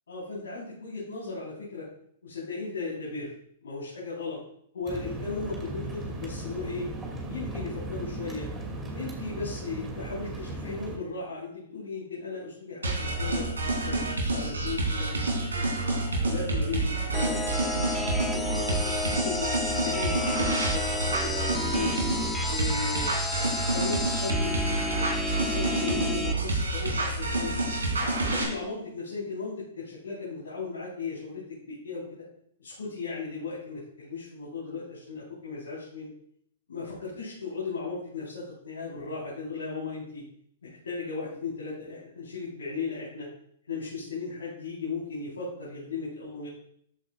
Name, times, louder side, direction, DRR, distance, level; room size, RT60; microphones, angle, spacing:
voice 1, 0.1-1.9 2.2-3.3 3.6-4.4 4.7-6.9 7.3-8.5 8.9-13.5 13.8-15.6 16.2-17.8 18.3-21.9 22.5-23.1 23.6-27.5 27.9-32.2 32.6-36.1 36.7-40.2 40.6-43.3 43.7-46.5, left 4 dB, 75° left, -8 dB, 4.2 m, -36 dB
sound 1, 4.9-11.0, right 2 dB, 15° right, 2.5 m, -37 dB
sound 2, 12.8-28.4, right 2 dB, 85° right, 3.3 m, -28 dB
sound 3, 17.1-26.3, left 2 dB, 5° left, 1.2 m, -32 dB
13.5 x 8.2 x 2.5 m, 0.67 s
figure-of-eight pair, 115°, 0 cm